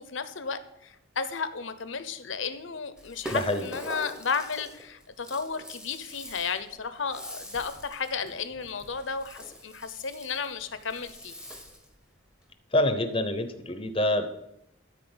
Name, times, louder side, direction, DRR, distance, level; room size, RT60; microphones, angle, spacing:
voice 1, 0.0-11.3, left 5 dB, 70° left, 11 dB, 0.9 m, -33 dB
Rattle (instrument), 3.0-12.0, equal, 5° right, 1.0 m, -44 dB
voice 2, 3.3-3.7 12.7-14.3, left 1 dB, 25° left, 9 dB, 0.8 m, -26 dB
13.5 x 4.7 x 7.9 m, 0.82 s
head